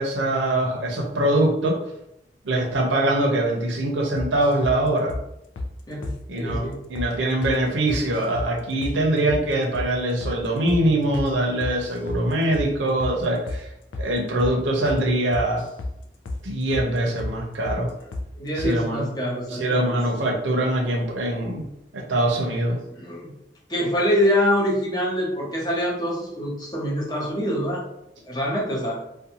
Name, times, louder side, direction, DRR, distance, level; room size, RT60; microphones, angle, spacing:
voice 1, 0.0-1.8 2.4-5.2 6.3-13.7 14.0-15.6 16.4-17.9 18.6-19.0 19.5-21.6 21.9-22.8, right 1 dB, 90° right, 1 dB, 0.6 m, -23 dB
sound 1, 4.2-4.8 5.1-5.3 5.6-5.7 6.0-6.2 6.5-6.6 7.0-7.1 7.4-7.6 7.9-8.5 8.8-9.0 9.3-9.4 9.7-9.9 10.2-10.4 10.7-10.8 11.1-11.3 11.6-12.2 12.5-12.7 13.0-13.2 13.5-13.6 13.9-14.1 14.4-14.6 14.9-15.0 15.3-16.0 16.3-16.4 16.7-16.9 17.2-17.3 17.6-17.8 18.1-18.3 18.6-18.7, left 2 dB, 85° left, 0.4 m, -31 dB
voice 2, 5.9-6.9 18.3-19.9 22.9-23.3 23.7-27.8 28.3-29.0, equal, 20° left, -4 dB, 0.7 m, -25 dB
2.6 x 2.2 x 2.8 m, 0.82 s
head